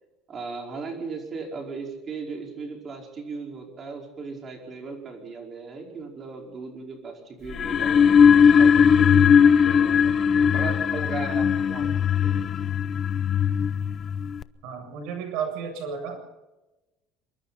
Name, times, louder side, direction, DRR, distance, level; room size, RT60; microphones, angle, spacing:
voice 1, 0.3-11.8 12.2-12.3, right 4 dB, 25° right, 2 dB, 4.8 m, -37 dB
sound 1, 7.5-14.4, left 7 dB, 25° left, 0.6 m, -19 dB
voice 2, 14.6-16.2, right 6 dB, 60° right, 5 dB, 7.7 m, -32 dB
26.5 x 23.0 x 4.3 m, 1.0 s
cardioid pair, 175°, 0 cm